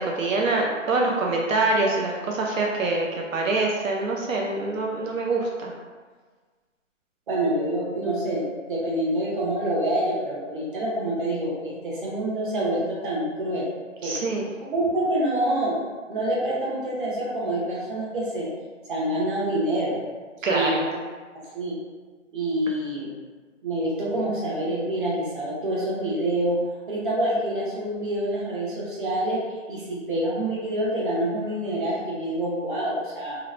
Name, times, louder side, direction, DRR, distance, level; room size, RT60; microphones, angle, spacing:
voice 1, 0.0-5.7 14.0-14.4 20.4-20.8, right 2 dB, 80° right, -1 dB, 0.5 m, -25 dB
voice 2, 7.3-13.6 14.0-14.2 14.6-15.8 16.1-18.5 18.9-20.0 20.5-20.8 21.5-21.7 22.3-23.1 23.6-26.6 26.9-33.4, right 1 dB, 40° right, -6 dB, 0.8 m, -26 dB
2.8 x 2.0 x 2.4 m, 1.4 s
hypercardioid pair, 155°, 38 cm